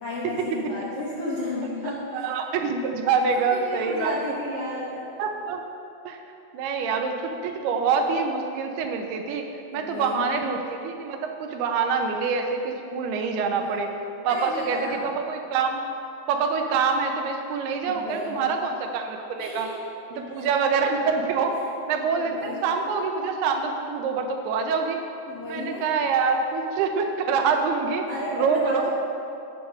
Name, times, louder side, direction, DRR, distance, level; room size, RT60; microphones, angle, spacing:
voice 1, 0.0-2.3 3.0-5.0 9.7-10.4 13.6-13.9 14.3-15.0 17.8-18.5 19.4-19.8 20.1-20.5 21.5-21.6 22.1-22.7 25.3-26.0 28.1-28.9, left 1 dB, 70° left, -7 dB, 1.5 m, -33 dB
voice 2, 2.1-4.2 5.2-5.6 6.1-6.2 6.5-9.4 9.7-13.9 14.2-15.8 16.3-19.7 20.1-21.6 21.9-25.0 25.5-28.1 28.3-28.9, right 5 dB, 80° right, 4 dB, 2.7 m, -25 dB
10.5 x 4.7 x 6.3 m, 2.6 s
omnidirectional pair, 4.5 m